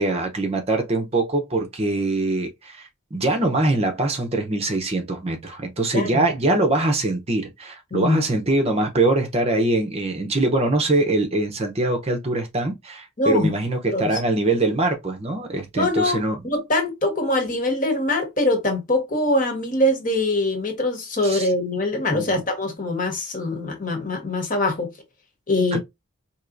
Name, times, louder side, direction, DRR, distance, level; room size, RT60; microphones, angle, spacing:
voice 1, 0.0-16.4 21.2-21.5 22.1-22.4 25.7-25.8, right 2 dB, 30° right, 0.7 m, -23 dB
voice 2, 13.2-13.5 13.9-14.1 15.8-24.9 25.5-25.8, left 1 dB, 40° left, 1.2 m, -23 dB
4.5 x 2.9 x 2.5 m
head